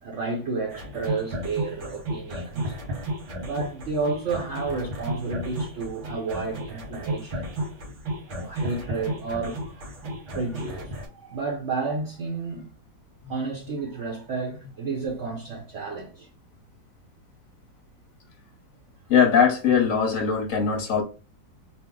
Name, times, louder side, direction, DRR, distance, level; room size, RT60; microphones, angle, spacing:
voice 1, 0.0-2.8 3.4-7.6 8.3-12.7 13.3-16.3, right 4 dB, 55° right, 0.8 m, -31 dB
sound 1, 0.7-11.1, right 1 dB, 85° right, 2.0 m, -33 dB
voice 2, 19.1-21.0, left 6 dB, 50° left, 1.1 m, -21 dB
4.1 x 2.1 x 3.7 m
omnidirectional pair, 2.0 m